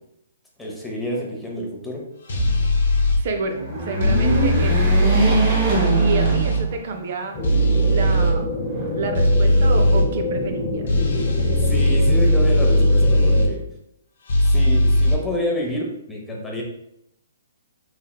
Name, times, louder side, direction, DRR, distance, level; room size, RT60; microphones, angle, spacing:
voice 1, 0.6-2.0 11.7-13.6 14.4-16.6, equal, 5° left, -2 dB, 0.6 m, -28 dB
sound 1, 2.3-3.2 4.0-6.6 7.4-8.3 9.1-10.1 10.9-13.5 14.3-15.1, equal, 65° left, 0.8 m, -18 dB
voice 2, 3.2-4.9 5.9-7.4 7.9-8.5 8.9-11.0, right 4 dB, 55° right, 5 dB, 0.4 m, -29 dB
sound 2, 3.5-7.1 7.6-7.7 8.7-9.5, right 1 dB, 30° right, 0.7 m, -23 dB
sound 3, 7.3-13.5, left 1 dB, 40° left, 1.3 m, -27 dB
3.1 x 2.7 x 2.2 m, 0.78 s
hypercardioid pair, 145°, 0 cm